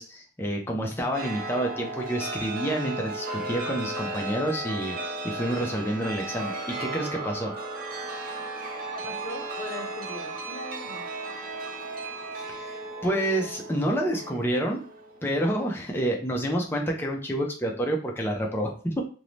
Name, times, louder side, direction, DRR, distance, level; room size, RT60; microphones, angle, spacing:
voice 1, 0.0-7.5 12.5-14.8 15.2-19.0, right 1 dB, 10° left, 1 dB, 0.4 m, -28 dB
Chime, 1.1-15.3, right 2 dB, 45° right, 0.4 m, -35 dB
voice 2, 8.9-11.0, left 2 dB, 75° left, 5 dB, 0.6 m, -40 dB
2.6 x 2.0 x 3.1 m, 0.39 s
head